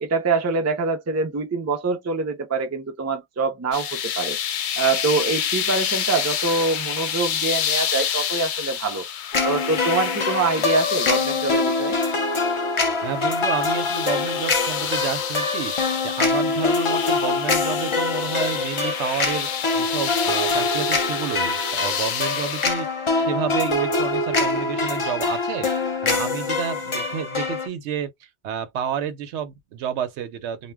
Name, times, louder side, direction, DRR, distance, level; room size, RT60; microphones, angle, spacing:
voice 1, 0.0-4.4 4.8-9.1 9.4-12.0, right 3 dB, 25° right, 0.3 m, -24 dB
sound 1, 3.7-22.7, left 9 dB, 90° left, 0.9 m, -29 dB
sound 2, 9.3-27.7, left 3 dB, 35° left, 0.5 m, -24 dB
voice 2, 13.0-15.7 16.0-19.5 19.7-22.9 23.1-25.7 26.0-30.7, right 8 dB, 85° right, 0.9 m, -30 dB
2.2 x 2.1 x 3.4 m
omnidirectional pair, 1.1 m